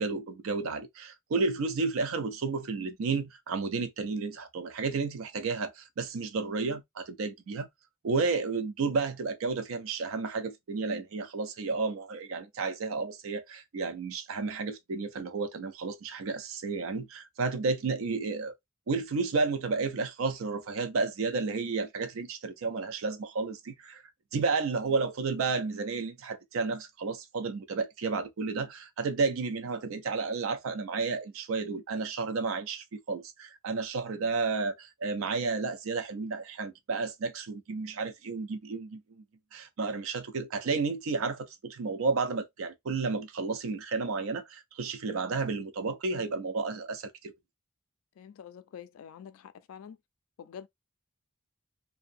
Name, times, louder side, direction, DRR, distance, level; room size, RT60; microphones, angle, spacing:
voice 1, 0.0-7.7 8.0-18.5 18.9-24.0 24.3-39.2 39.5-47.3, right 4 dB, 75° right, 0.4 m, -32 dB
voice 2, 48.2-50.0 50.4-50.7, left 8 dB, 80° left, 0.3 m, -46 dB
2.6 x 2.2 x 2.5 m
head